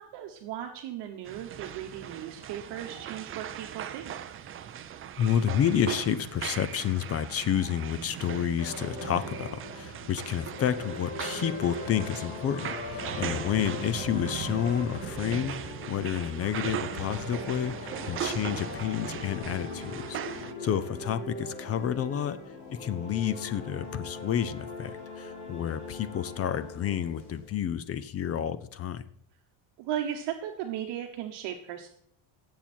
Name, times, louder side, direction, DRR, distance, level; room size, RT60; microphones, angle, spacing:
voice 1, 0.0-4.1 13.0-13.3 20.6-20.8 29.8-31.9, right 10 dB, 55° right, 3 dB, 1.3 m, -37 dB
sound 1, 1.3-20.5, right 9 dB, 30° right, 0.5 m, -39 dB
voice 2, 5.2-22.4 22.7-29.0, left 9 dB, 30° left, 14 dB, 0.5 m, -30 dB
sound 2, 8.6-27.6, left 3 dB, 55° left, 3.2 m, -41 dB
17.5 x 7.5 x 4.4 m, 0.67 s
cardioid pair, 150°, 48 cm